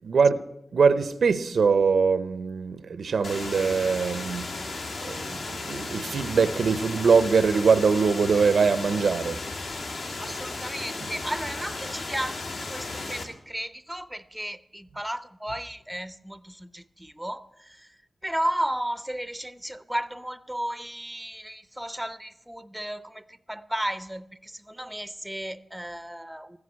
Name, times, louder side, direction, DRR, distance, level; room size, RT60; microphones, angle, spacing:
voice 1, 0.0-0.4 0.7-4.5 5.0-9.4 11.0-11.1, right 5 dB, 85° right, 0.6 m, -22 dB
sound 1, 3.2-13.2, left 3 dB, 80° left, 2.2 m, -35 dB
voice 2, 10.2-17.9 18.2-26.6, right 1 dB, 5° right, 0.5 m, -34 dB
14.0 x 9.6 x 8.5 m
wide cardioid pair, 145°, 0 cm